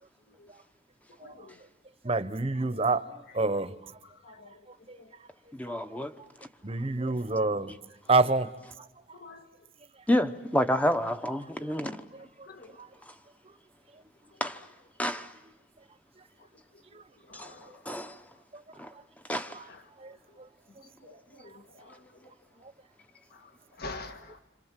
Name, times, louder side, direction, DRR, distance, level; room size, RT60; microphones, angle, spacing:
voice 1, 1.2-1.5 4.2-4.5 5.0-5.1 9.2-9.4 12.5-12.7 17.3-17.7 19.7-19.8 21.1-21.5 21.8-22.0 23.8-24.4, left 3 dB, 50° left, 1.8 m, -44 dB
voice 2, 2.0-3.8 4.9-5.0 6.6-7.7 8.1-8.5 12.8-12.9 19.5-19.6 20.0-20.1, right 3 dB, 30° right, 1.0 m, -27 dB
voice 3, 5.5-6.1 10.1-12.0 14.4-14.6 15.0-15.3 17.3-17.5 17.8-18.2 18.8-18.9 19.3-19.6, left 1 dB, 5° left, 1.0 m, -29 dB
27.5 x 27.0 x 7.6 m
head